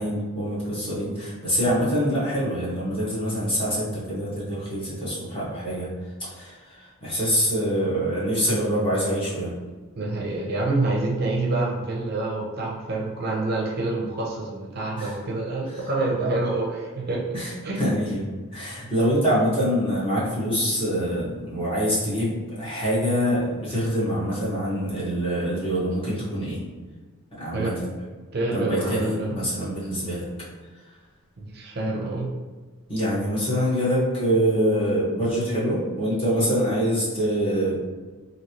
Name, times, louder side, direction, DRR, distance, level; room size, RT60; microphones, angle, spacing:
voice 1, 0.0-5.9 6.2-9.6 15.0-15.2 17.3-26.6 27.4-27.7 28.5-30.3 32.9-37.8, equal, 25° left, -9 dB, 1.0 m, -25 dB
voice 2, 10.0-17.3 17.6-17.9 27.5-27.7 28.3-29.4 31.4-32.3 36.4-36.5, right 2 dB, 45° right, -2 dB, 0.5 m, -27 dB
3.0 x 2.7 x 2.8 m, 1.4 s
head